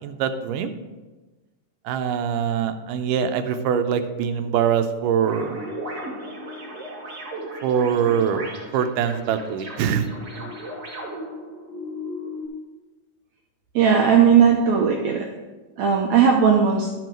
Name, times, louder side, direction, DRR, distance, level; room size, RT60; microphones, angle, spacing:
voice 1, 0.0-0.7 1.9-5.6 7.6-10.1 10.4-10.5, right 7 dB, 90° right, 8 dB, 2.2 m, -23 dB
sound 1, 5.2-12.5, equal, 35° right, 1.9 m, -35 dB
voice 2, 13.7-15.3 15.8-16.9, right 7 dB, 75° right, 0 dB, 1.9 m, -17 dB
12.0 x 4.7 x 5.1 m, 1.2 s
omnidirectional pair, 3.6 m